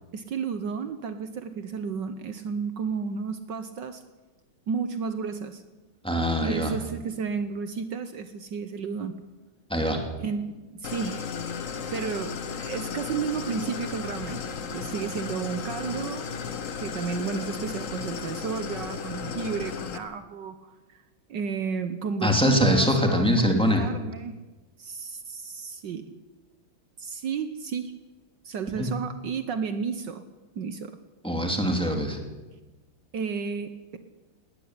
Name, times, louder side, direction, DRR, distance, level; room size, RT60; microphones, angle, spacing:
voice 1, 0.1-4.0 4.7-5.6 6.4-9.2 10.2-11.2 11.9-14.4 14.7-16.3 16.8-21.0 21.3-24.4 24.8-26.0 27.0-28.0 28.4-30.2 30.6-31.0 33.1-34.0, right 6 dB, 65° right, 9 dB, 1.6 m, -32 dB
voice 2, 6.0-6.7 9.7-10.0 22.2-23.8 28.8-28.9 31.2-32.2, equal, 5° left, 2 dB, 2.8 m, -23 dB
Idling, 10.8-20.0, left 6 dB, 45° left, 1.3 m, -34 dB
19.0 x 14.5 x 9.8 m, 1.2 s
omnidirectional pair, 2.1 m